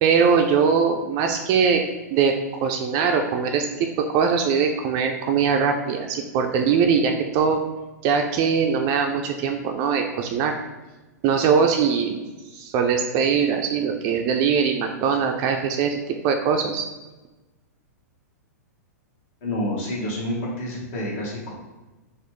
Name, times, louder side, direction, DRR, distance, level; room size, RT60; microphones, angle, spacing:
voice 1, 0.0-1.8 2.1-7.6 8.0-10.5 11.2-12.2 12.5-16.0 16.2-16.8, right 6 dB, 40° right, 4 dB, 0.3 m, -21 dB
voice 2, 19.4-21.5, left 1 dB, 50° left, -3 dB, 1.3 m, -28 dB
4.0 x 2.4 x 3.0 m, 1.1 s
hypercardioid pair, 110°, 9 cm